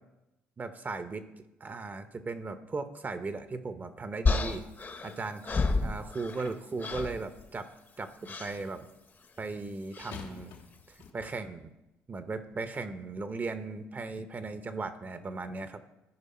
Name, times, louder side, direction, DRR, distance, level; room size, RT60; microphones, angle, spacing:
voice 1, 0.6-1.2 1.6-4.7 5.0-5.4 5.8-7.7 8.0-8.1 8.4-8.9 9.4-10.5 11.1-11.7 12.1-15.8, right 3 dB, 35° right, 10 dB, 0.8 m, -37 dB
sound 1, 4.2-6.5 6.8-7.2 8.2-8.6 9.9-10.2, left 3 dB, 35° left, 0.9 m, -30 dB
sound 2, 7.3-7.7 10.1-11.6 12.4-12.6, left 6 dB, 80° left, 1.3 m, -49 dB
13.5 x 5.2 x 4.3 m, 0.94 s
supercardioid pair, 70°, 5 cm